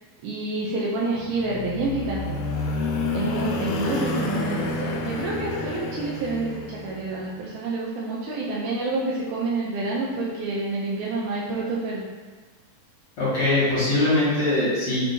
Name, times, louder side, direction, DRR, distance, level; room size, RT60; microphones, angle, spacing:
voice 1, 0.2-2.4 3.1-12.1, right 3 dB, 80° right, -6 dB, 2.1 m, -28 dB
sound 1, 1.3-7.1, left 3 dB, 90° left, 2.1 m, -29 dB
voice 2, 13.2-15.1, left 2 dB, 55° left, -11 dB, 2.1 m, -22 dB
5.5 x 2.7 x 2.6 m, 1.4 s
omnidirectional pair, 3.6 m